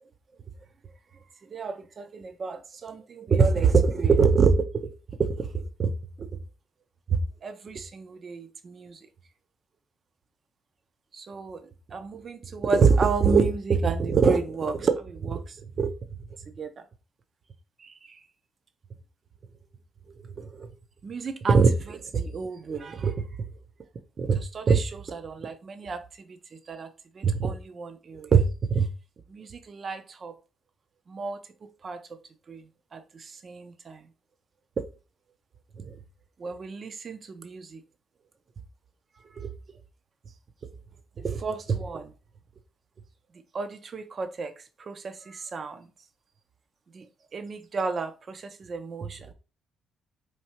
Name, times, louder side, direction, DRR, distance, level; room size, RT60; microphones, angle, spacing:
voice 1, 1.5-4.6 5.2-5.9 6.2-6.3 7.1-9.0 11.1-15.9 16.6-16.7 17.8-18.2 20.4-20.7 21.0-23.3 24.2-26.0 26.3-26.4 26.7-26.9 27.2-28.9 29.3-30.3 31.1-32.0 32.5-32.6 32.9-34.0 34.8-34.9 35.8-36.0 36.4-37.8 39.4-39.5 41.2-42.1 43.5-44.5 44.8-45.9 46.9-47.0 47.3-49.3, right 5 dB, 45° right, 0.5 m, -27 dB
4.4 x 2.7 x 2.9 m
cardioid pair, 90°, 0 cm